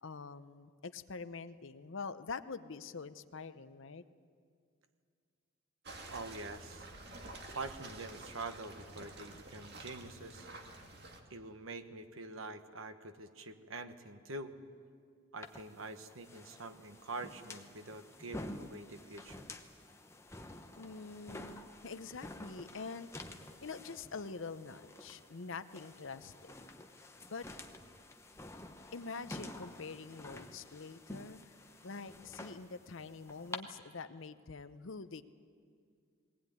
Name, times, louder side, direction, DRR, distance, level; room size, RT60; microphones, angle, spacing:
voice 1, 0.0-4.0 20.8-23.3 23.6-26.5 27.3-27.5 28.9-31.6 31.8-35.2, left 4 dB, 70° left, 12 dB, 0.8 m, -45 dB
sound 1, 5.8-11.2, right 2 dB, 50° right, 2.2 m, -50 dB
voice 2, 6.1-6.9 7.5-10.5 11.3-14.5 15.3-19.5, right 2 dB, 80° right, 8 dB, 1.3 m, -45 dB
sound 2, 15.4-33.6, left 2 dB, 15° left, 0.9 m, -50 dB
20.5 x 19.0 x 9.4 m, 2.2 s
head